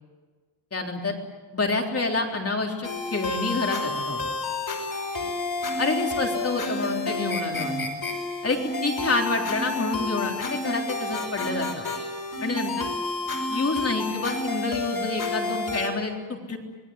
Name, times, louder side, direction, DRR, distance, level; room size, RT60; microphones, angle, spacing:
voice 1, 0.7-1.2 1.5-4.2 5.8-7.9 8.4-11.8 12.4-12.9 13.5-16.6, left 3 dB, 35° left, 2 dB, 3.8 m, -28 dB
sound 1, 2.8-15.9, left 2 dB, 55° left, 6.4 m, -30 dB
26.5 x 21.0 x 9.6 m, 1.3 s
wide cardioid pair, 170°, 43 cm